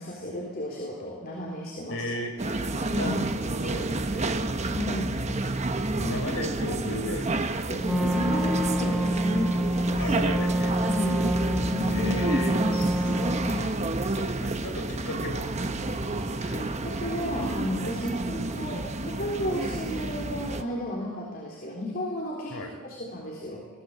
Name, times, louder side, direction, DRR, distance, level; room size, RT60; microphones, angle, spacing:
voice 1, 0.0-2.0 2.9-3.2 4.7-5.2 7.7-10.4 10.8-11.2 11.5-13.8 16.6-23.8, equal, 40° left, -2 dB, 3.8 m, -34 dB
voice 2, 1.9-2.4 3.0-3.1 3.6-4.3 5.9-7.3 10.0-10.7 11.9-12.6 14.1-15.4 15.9-16.8 22.5-22.7, left 1 dB, 70° left, 2 dB, 4.9 m, -35 dB
sound 1, 2.4-20.6, right 2 dB, 30° right, 1.1 m, -29 dB
Wind instrument woodwind instrument, 7.8-13.8, right 1 dB, 5° right, 0.7 m, -27 dB
22.5 x 17.5 x 8.0 m, 1.3 s
head